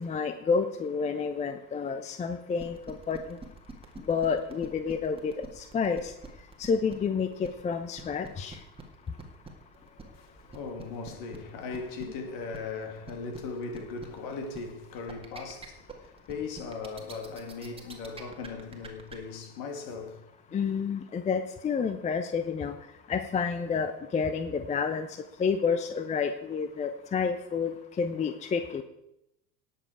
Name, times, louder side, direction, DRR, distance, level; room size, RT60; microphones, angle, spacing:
voice 1, 0.0-3.4 4.1-5.3 5.7-6.0 6.6-8.6 20.5-22.7 23.1-25.1 25.4-27.7 28.0-28.8, left 5 dB, 15° left, 0.6 m, -29 dB
sound 1, 2.6-19.2, right 4 dB, 10° right, 1.9 m, -46 dB
voice 2, 9.7-20.6, left 4 dB, 50° left, 2.6 m, -39 dB
18.0 x 7.3 x 4.7 m
figure-of-eight pair, 80°, 49 cm